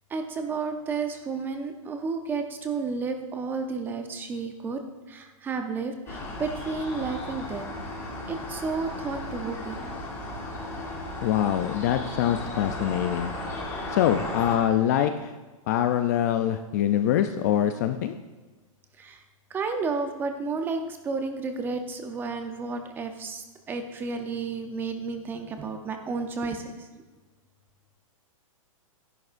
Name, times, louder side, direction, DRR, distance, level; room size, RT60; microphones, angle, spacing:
voice 1, 0.1-4.8 5.1-7.7 8.3-9.9 19.0-19.2 19.5-26.6, right 4 dB, 10° right, 6 dB, 0.6 m, -32 dB
sound 1, 6.1-14.6, left 2 dB, 15° left, 1.6 m, -35 dB
voice 2, 11.2-13.3 13.9-15.3 15.7-18.1, left 10 dB, 30° left, 8 dB, 0.4 m, -24 dB
12.0 x 10.5 x 2.5 m, 1.3 s
hypercardioid pair, 155°, 18 cm